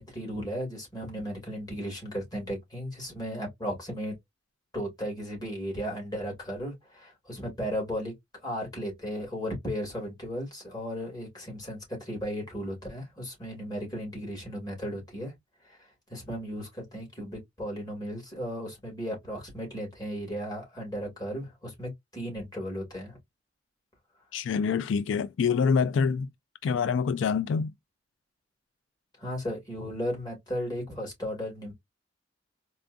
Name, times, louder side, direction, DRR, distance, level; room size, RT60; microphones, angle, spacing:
voice 1, 0.0-4.1 4.7-8.1 8.4-11.8 12.1-15.3 15.7-15.8 16.1-23.2 29.2-31.7, equal, 20° left, 2.1 m, -35 dB
voice 2, 24.3-26.3 26.6-27.7, left 6 dB, 80° left, 0.3 m, -26 dB
4.4 x 2.4 x 2.5 m
head